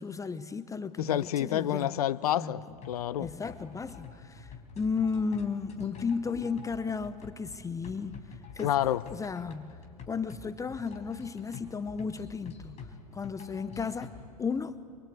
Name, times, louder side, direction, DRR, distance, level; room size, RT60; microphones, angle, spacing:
voice 1, 0.0-2.0 2.3-2.5 3.2-8.7 9.1-9.8 10.1-14.1 14.4-14.8, left 5 dB, 15° left, 0.8 m, -34 dB
voice 2, 1.0-3.3 8.6-9.0, left 11 dB, 70° left, 0.7 m, -29 dB
sound 1, 2.7-14.3, left 5 dB, 35° left, 4.7 m, -48 dB
29.5 x 24.0 x 8.2 m
figure-of-eight pair, 90°, 20 cm